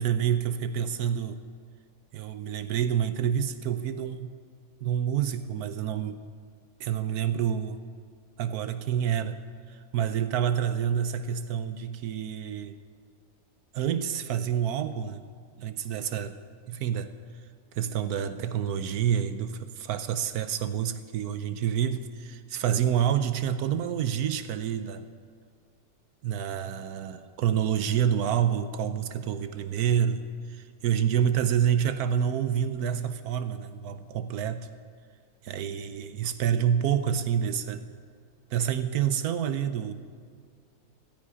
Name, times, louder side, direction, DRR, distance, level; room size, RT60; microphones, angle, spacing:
voice 1, 0.0-1.4 2.1-4.3 4.8-6.2 6.8-7.8 8.4-9.4 9.7-12.8 13.7-15.2 15.6-16.4 16.7-17.1 17.7-25.0 26.2-30.3 30.8-34.7 35.4-37.9 38.5-39.9, right 9 dB, 75° right, 11 dB, 1.1 m, -28 dB
13.0 x 9.8 x 9.6 m, 2.1 s
omnidirectional pair, 1.7 m